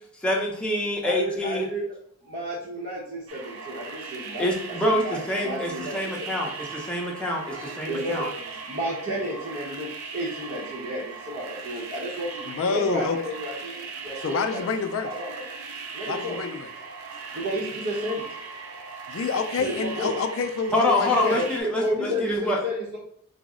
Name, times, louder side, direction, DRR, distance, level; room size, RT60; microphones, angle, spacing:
voice 1, 0.2-1.7 4.4-8.3 20.7-22.6, left 1 dB, 5° left, -3 dB, 0.6 m, -26 dB
voice 2, 1.0-1.9 2.2-4.5 4.8-6.3 7.5-14.6 15.1-15.3 15.9-16.4 17.3-18.2 19.6-20.1 21.2-21.5 21.8-23.0, equal, 55° right, -6 dB, 0.8 m, -32 dB
sound 1, 3.3-21.6, right 5 dB, 85° right, 0.5 m, -39 dB
voice 3, 12.4-13.2 14.2-15.1 16.0-16.7 17.1-17.3 19.1-21.4, left 5 dB, 65° left, 7 dB, 0.3 m, -28 dB
4.0 x 2.0 x 3.6 m, 0.67 s
head